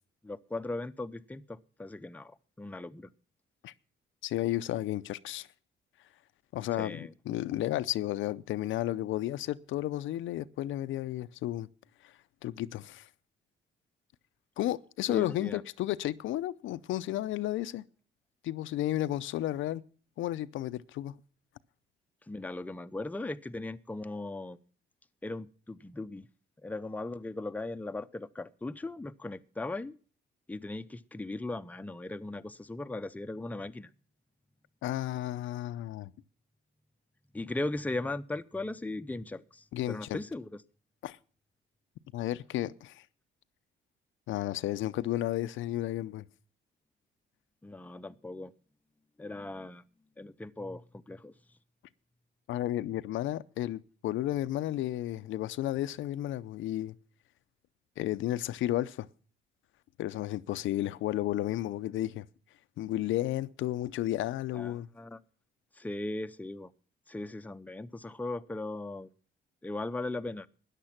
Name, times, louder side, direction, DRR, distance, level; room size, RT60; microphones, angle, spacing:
voice 1, 0.2-3.1 6.7-7.1 15.1-15.6 22.3-24.6 25.2-26.3 26.6-29.9 30.5-33.9 37.3-40.5 47.6-48.5 49.2-49.8 50.2-51.3 64.5-65.2 65.7-66.7 67.1-69.1 69.6-70.5, left 2 dB, 10° left, 0.6 m, -38 dB
voice 2, 4.2-5.5 6.5-11.7 12.4-13.1 14.6-17.8 18.4-19.8 20.2-21.1 34.8-36.1 39.7-40.2 41.0-41.2 42.1-43.0 44.3-46.3 52.5-57.0 58.0-59.1 60.0-62.3 62.8-64.9, left 14 dB, 80° left, 0.6 m, -32 dB
13.5 x 9.9 x 5.9 m
cardioid pair, 90°, 20 cm